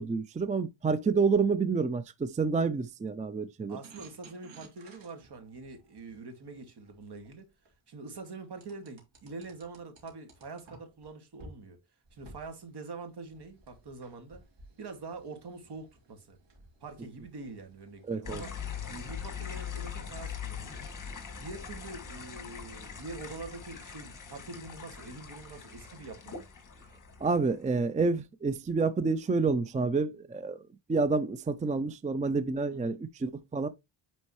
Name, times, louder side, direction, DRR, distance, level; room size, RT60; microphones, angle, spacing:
voice 1, 0.0-3.8 18.1-18.4 27.2-33.7, right 4 dB, 15° right, 0.4 m, -29 dB
voice 2, 3.7-7.5 7.9-11.8 12.1-14.4 14.8-16.4 16.8-18.5 18.9-20.8 21.4-26.5 32.7-33.0, right 3 dB, 60° right, 2.2 m, -45 dB
sound 1, 3.8-7.7 8.6-11.1 11.4-11.6 12.1-18.2, right 2 dB, 80° right, 3.1 m, -56 dB
sound 2, 18.2-27.7, left 7 dB, 45° left, 2.0 m, -42 dB
9.7 x 4.5 x 3.1 m
cardioid pair, 110°, 45 cm